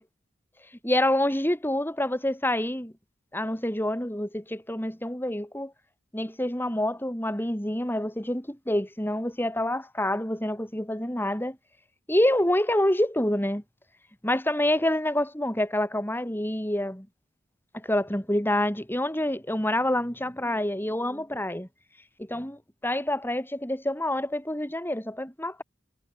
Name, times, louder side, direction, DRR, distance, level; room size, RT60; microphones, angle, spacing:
voice 1, 0.8-2.9 3.3-5.7 6.1-11.6 12.1-13.6 14.2-17.1 17.7-21.7 22.2-25.6, left 1 dB, 10° left, 5.9 m, -27 dB
head